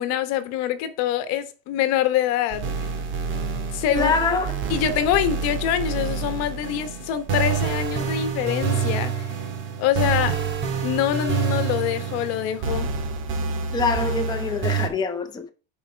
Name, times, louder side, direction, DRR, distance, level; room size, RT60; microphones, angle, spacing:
voice 1, 0.0-2.7 3.7-4.1 4.7-9.3 9.8-10.4 10.8-12.9, left 11 dB, 55° left, 1.3 m, -25 dB
sound 1, 2.5-14.9, right 5 dB, 40° right, 2.2 m, -27 dB
voice 2, 3.9-4.5 13.7-15.5, left 4 dB, 15° left, 1.1 m, -24 dB
10.5 x 5.0 x 4.6 m
cardioid pair, 155°, 30 cm